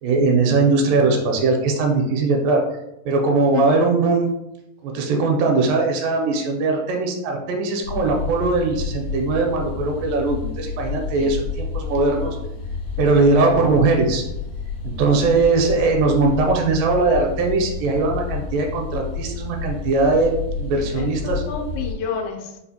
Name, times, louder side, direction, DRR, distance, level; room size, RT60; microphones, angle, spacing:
voice 1, 0.0-2.6 3.1-4.3 4.8-12.4 13.0-14.2 14.8-21.4, right 3 dB, 80° right, 2 dB, 2.3 m, -20 dB
sound 1, 7.8-21.9, left 5 dB, 75° left, 1.9 m, -30 dB
voice 2, 20.9-22.6, left 6 dB, 90° left, 2 dB, 2.4 m, -29 dB
5.6 x 2.4 x 2.8 m, 0.85 s
omnidirectional pair, 4.0 m